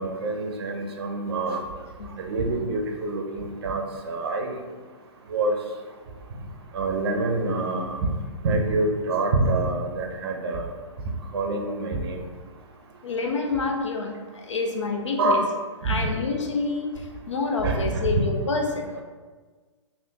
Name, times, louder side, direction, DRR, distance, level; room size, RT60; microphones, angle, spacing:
voice 1, 0.0-1.6 2.2-4.6 5.3-5.5 6.7-8.1 8.4-10.6 11.3-12.2 15.2-15.5 15.8-16.1 17.6-18.0, right 2 dB, 55° right, 2 dB, 0.5 m, -26 dB
voice 2, 13.0-15.4 15.8-19.0, left 3 dB, 70° left, 2 dB, 0.5 m, -28 dB
3.4 x 2.5 x 2.7 m, 1.4 s
figure-of-eight pair, 120°, 16 cm